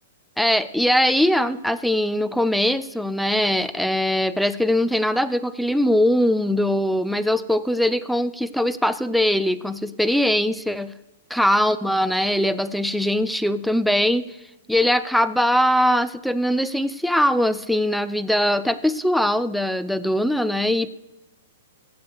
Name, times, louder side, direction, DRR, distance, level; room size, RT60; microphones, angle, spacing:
voice 1, 0.4-10.9 11.3-14.4 14.7-20.9, equal, ahead, 15 dB, 0.4 m, -21 dB
15.5 x 7.8 x 4.8 m, 0.98 s
hypercardioid pair, 120°, 0 cm